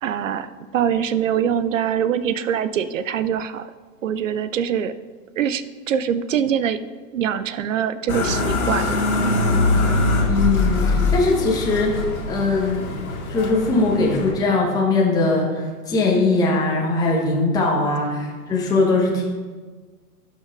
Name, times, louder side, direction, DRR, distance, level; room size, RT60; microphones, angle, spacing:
voice 1, 0.0-3.7 4.0-4.9 5.4-6.8 7.1-8.9, right 8 dB, 55° right, 13 dB, 0.5 m, -23 dB
sound 1, 8.1-14.3, left 2 dB, 60° left, 1.9 m, -22 dB
voice 2, 10.2-12.9 13.3-19.2, left 3 dB, 10° left, -3 dB, 1.0 m, -20 dB
16.5 x 5.8 x 2.4 m, 1.5 s
figure-of-eight pair, 110°, 47 cm